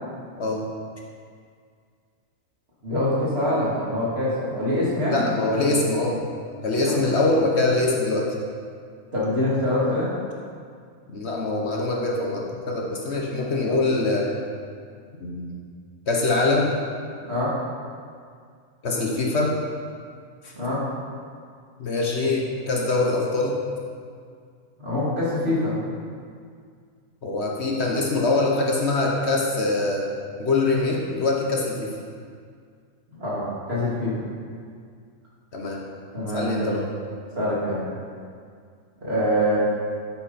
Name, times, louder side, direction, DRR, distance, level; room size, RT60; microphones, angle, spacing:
voice 1, 2.8-5.2 6.9-7.0 9.1-10.1 17.2-17.5 20.6-20.8 24.8-25.7 33.2-34.1 36.1-36.7 37.4-37.8 39.0-39.6, left 1 dB, 50° right, -8 dB, 3.0 m, -24 dB
voice 2, 5.1-6.2 6.6-8.3 11.1-14.3 15.2-15.6 16.1-16.8 18.8-19.5 20.4-20.5 21.8-23.6 27.2-30.0 30.4-31.9 35.5-35.8 36.3-36.8, left 2 dB, 55° left, -1 dB, 1.3 m, -23 dB
9.5 x 8.4 x 4.2 m, 2.1 s
omnidirectional pair, 1.4 m